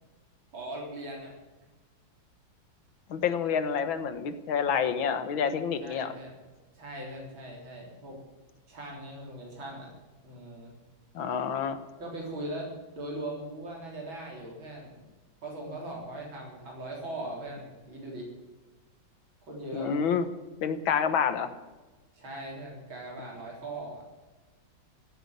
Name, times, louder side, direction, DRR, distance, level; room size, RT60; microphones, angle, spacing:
voice 1, 0.5-1.3 5.8-6.4 6.7-8.2 8.7-9.9 10.2-10.7 12.0-15.1 15.4-18.3 19.5-19.9 22.1-24.0, right 1 dB, 90° right, -2 dB, 4.5 m, -40 dB
voice 2, 3.1-6.2 11.2-11.8 19.7-20.3 20.6-21.5, left 7 dB, 85° left, 10 dB, 2.0 m, -28 dB
16.0 x 8.3 x 9.8 m, 1.2 s
omnidirectional pair, 2.1 m